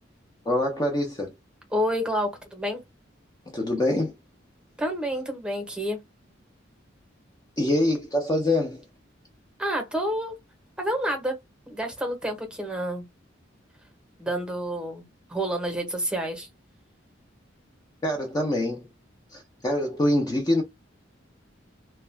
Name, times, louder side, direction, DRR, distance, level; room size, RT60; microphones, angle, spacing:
voice 1, 0.5-1.3 3.5-4.1 7.6-8.8 18.0-18.9 19.3-20.6, left 1 dB, 20° left, 0.5 m, -25 dB
voice 2, 1.7-2.8 4.8-6.0 9.6-10.3 10.8-11.3 11.7-13.0 14.2-15.0 15.3-16.5, equal, 5° right, 0.8 m, -28 dB
2.3 x 2.2 x 3.2 m
head